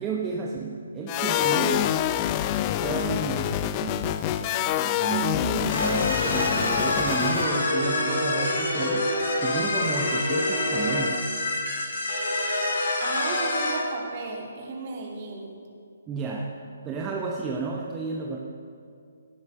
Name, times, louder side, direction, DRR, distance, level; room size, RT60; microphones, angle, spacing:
voice 1, 0.0-2.0 2.8-11.3 16.1-16.6 16.8-18.4, right 4 dB, 15° right, -1 dB, 1.0 m, -32 dB
sound 1, 1.1-7.6, left 12 dB, 25° left, 0.4 m, -26 dB
sound 2, 5.7-13.7, left 2 dB, 50° left, 3.8 m, -26 dB
voice 2, 13.0-15.5, right 3 dB, 35° right, -1 dB, 3.1 m, -34 dB
18.0 x 8.8 x 6.9 m, 2.3 s
figure-of-eight pair, 135°, 0 cm